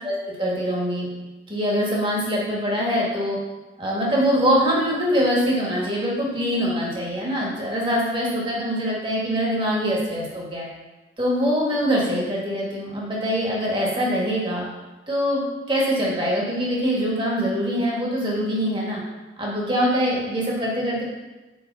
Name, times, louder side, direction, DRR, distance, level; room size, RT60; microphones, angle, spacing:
voice 1, 0.0-1.1 1.5-3.4 3.8-10.7 11.2-14.6 15.1-19.0 19.4-21.0, equal, 25° right, -4 dB, 1.9 m, -23 dB
8.1 x 4.4 x 5.5 m, 1.1 s
head